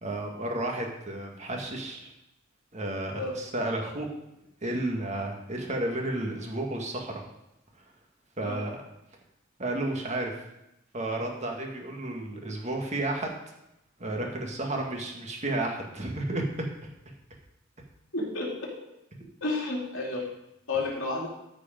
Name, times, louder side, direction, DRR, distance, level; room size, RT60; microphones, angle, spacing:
voice 1, 0.0-2.1 2.7-4.1 4.6-7.2 8.4-8.8 9.6-10.3 10.9-13.3 14.0-16.7, right 1 dB, 35° right, 1 dB, 1.8 m, -32 dB
voice 2, 18.1-18.5 19.4-20.2 20.7-21.3, left 2 dB, 65° left, -3 dB, 3.1 m, -31 dB
13.5 x 5.1 x 5.2 m, 0.87 s
head